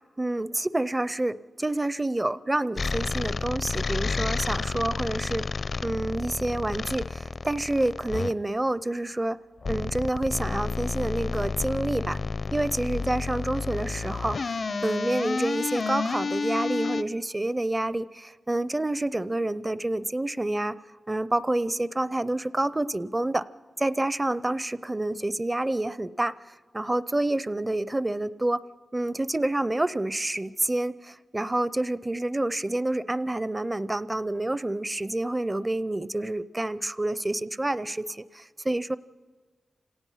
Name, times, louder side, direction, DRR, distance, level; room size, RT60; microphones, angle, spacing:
voice 1, 0.2-5.5 5.8-9.4 9.7-12.2 12.5-20.8 21.1-23.4 23.8-28.6 28.9-39.0, right 1 dB, 20° right, 17 dB, 0.5 m, -28 dB
sound 1, 2.8-8.3 9.6-17.0, left 4 dB, 55° left, 0.5 m, -30 dB
30.0 x 17.5 x 5.6 m, 1.5 s
wide cardioid pair, 100°, 0 cm